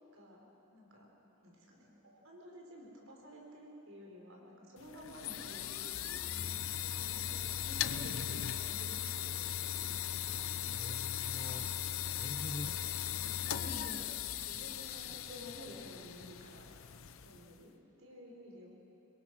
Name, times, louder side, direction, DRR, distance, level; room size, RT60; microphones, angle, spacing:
voice 1, 0.1-1.1 1.4-9.3 9.7-10.7 13.1-16.6 17.2-17.7 18.0-18.7, equal, 70° right, -1 dB, 5.0 m, -52 dB
sound 1, 4.8-17.6, left 10 dB, 70° left, 0.7 m, -38 dB
voice 2, 10.7-12.9, left 1 dB, 25° left, 5 dB, 1.0 m, -46 dB
26.0 x 22.0 x 6.3 m, 3.0 s
head